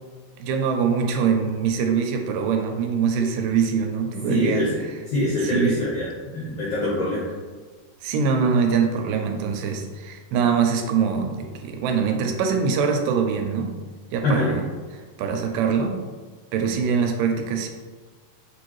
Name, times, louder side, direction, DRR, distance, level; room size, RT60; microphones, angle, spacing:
voice 1, 0.4-4.9 5.4-5.7 8.0-13.8 14.1-14.6 15.2-16.0 16.5-17.7, right 6 dB, 85° right, 4 dB, 2.2 m, -23 dB
voice 2, 4.3-4.8 5.1-6.1 6.3-7.3 14.2-14.6, left 1 dB, 80° left, -6 dB, 1.5 m, -24 dB
6.6 x 2.5 x 3.1 m, 1.4 s
omnidirectional pair, 3.9 m